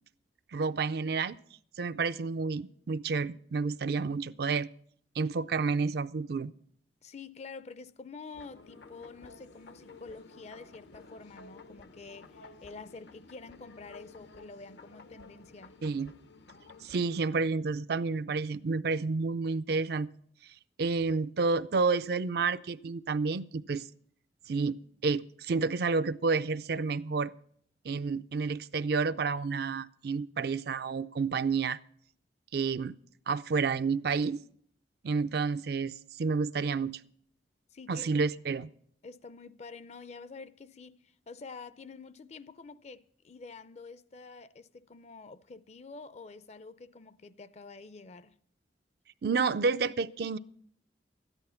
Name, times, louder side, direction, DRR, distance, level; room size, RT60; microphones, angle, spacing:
voice 1, 0.5-1.4 1.8-4.7 5.2-6.5 15.8-16.1 16.8-20.1 20.8-23.9 24.5-24.8 25.0-27.3 27.8-31.8 32.5-33.0 33.3-34.4 35.0-37.0 37.9-38.7 49.2-50.4, right 4 dB, 60° right, 0.4 m, -30 dB
voice 2, 7.0-15.8 37.7-38.1 39.0-48.4, left 4 dB, 40° left, 0.5 m, -48 dB
sound 1, 8.3-17.2, left 3 dB, 75° left, 0.8 m, -53 dB
13.5 x 11.0 x 5.6 m
head